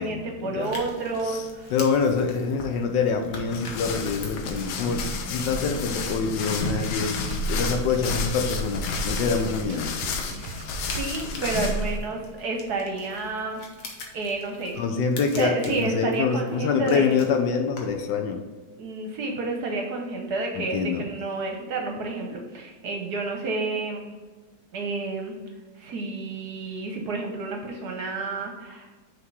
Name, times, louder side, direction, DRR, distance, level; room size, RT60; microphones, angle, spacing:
voice 1, 0.0-1.7 10.3-13.6 14.1-14.8 15.2-17.1 18.8-24.1 24.7-25.3 25.8-28.9, right 3 dB, 60° right, 2 dB, 1.2 m, -30 dB
sound 1, 0.6-18.1, left 3 dB, 50° left, 1.2 m, -45 dB
voice 2, 1.2-9.9 14.8-18.4 20.6-21.0, left 5 dB, 70° left, 5 dB, 1.2 m, -26 dB
sound 2, 3.5-12.0, left 2 dB, 90° left, 1.6 m, -30 dB
sound 3, 6.5-11.2, right 7 dB, 80° right, 1.3 m, -42 dB
6.4 x 3.6 x 4.7 m, 1.3 s
omnidirectional pair, 2.2 m